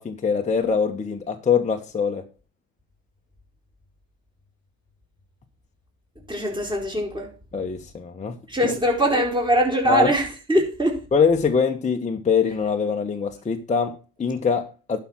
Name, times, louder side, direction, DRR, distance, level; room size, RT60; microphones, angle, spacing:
voice 1, 0.0-2.2 7.5-8.4 8.6-8.7 9.8-10.1 11.1-15.0, left 6 dB, 15° left, 1.2 m, -23 dB
voice 2, 6.3-7.3 8.5-11.0, equal, 10° right, 4.5 m, -22 dB
11.5 x 5.8 x 6.2 m
supercardioid pair, 115°, 40 cm